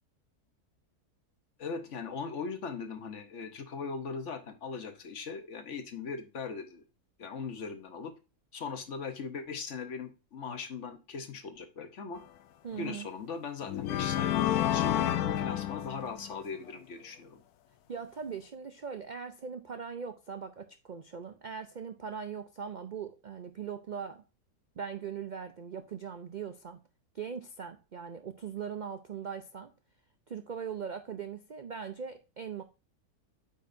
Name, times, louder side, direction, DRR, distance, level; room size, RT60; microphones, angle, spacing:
voice 1, 1.6-6.8 7.2-8.1 8.5-12.2 12.8-17.4, left 5 dB, 55° left, 1.2 m, -39 dB
voice 2, 12.6-13.1 17.9-24.2 24.8-26.8 27.1-29.7 30.3-32.6, right 6 dB, 65° right, 0.4 m, -40 dB
sound 1, 12.7-12.9 13.6-16.4, left 11 dB, 85° left, 1.1 m, -29 dB
8.8 x 5.6 x 2.6 m
omnidirectional pair, 1.6 m